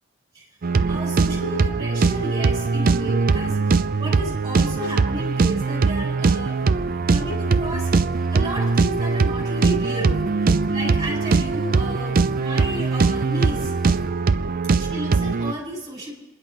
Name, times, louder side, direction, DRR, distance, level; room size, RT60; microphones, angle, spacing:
sound 1, 0.6-15.5, right 4 dB, 45° right, 0.4 m, -21 dB
voice 1, 0.9-6.6 7.1-7.9 8.3-10.2 10.7-13.7 14.8-16.1, equal, 20° right, -2 dB, 5.2 m, -32 dB
sound 2, 5.2-14.1, equal, ahead, 3.9 m, -51 dB
28.5 x 11.0 x 4.5 m, 1.1 s
head